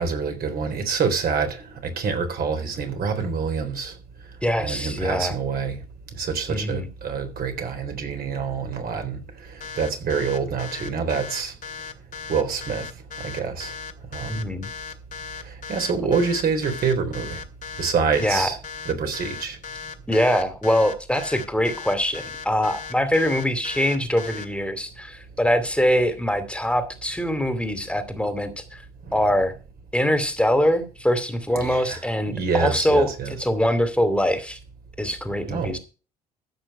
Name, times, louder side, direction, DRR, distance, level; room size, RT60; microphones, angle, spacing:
voice 1, 0.0-3.9 4.6-5.8 6.2-9.2 9.8-11.5 12.3-12.9 13.2-13.7 14.1-14.4 15.7-17.4 17.8-18.6 18.9-19.6 29.1-29.2 31.6-32.0 32.3-33.3 35.5-35.7, right 5 dB, 50° right, 3.8 m, -26 dB
voice 2, 4.4-5.3 6.5-6.9 14.3-14.7 18.2-18.5 20.1-28.8 29.1-29.5 29.9-34.6 35.0-35.8, equal, 5° left, 2.6 m, -23 dB
sound 1, 9.6-24.4, left 6 dB, 45° left, 2.3 m, -37 dB
15.0 x 6.2 x 5.5 m
hypercardioid pair, 60°, 19 cm